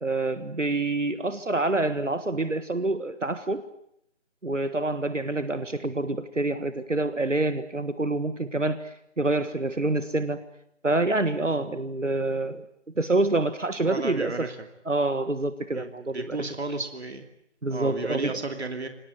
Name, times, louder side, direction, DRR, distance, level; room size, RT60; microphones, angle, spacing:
voice 1, 0.0-3.7 4.4-10.4 10.8-12.6 13.0-14.5 14.8-16.5 17.6-18.4, right 2 dB, 85° right, 12 dB, 1.7 m, -27 dB
voice 2, 13.9-14.6 15.7-17.2 17.7-18.9, right 3 dB, 60° right, 7 dB, 2.8 m, -33 dB
26.0 x 19.0 x 9.3 m, 0.75 s
figure-of-eight pair, 155°, 36 cm